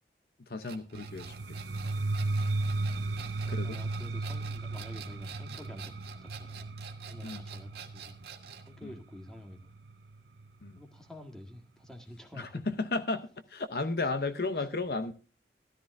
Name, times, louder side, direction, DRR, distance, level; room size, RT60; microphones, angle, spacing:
voice 1, 0.5-1.6 3.5-3.8 7.2-7.4 8.8-8.9 10.6-10.8 12.3-15.1, left 3 dB, 60° left, 0.8 m, -34 dB
sound 1, 0.6-8.7, right 7 dB, 60° right, 1.8 m, -48 dB
sound 2, 0.9-10.7, right 2 dB, 90° right, 0.8 m, -35 dB
voice 2, 3.4-5.9 6.2-6.7 7.1-8.2 8.6-9.7 10.7-12.7 14.0-14.1 14.5-14.7, left 1 dB, 5° left, 1.7 m, -49 dB
14.0 x 13.0 x 2.6 m
head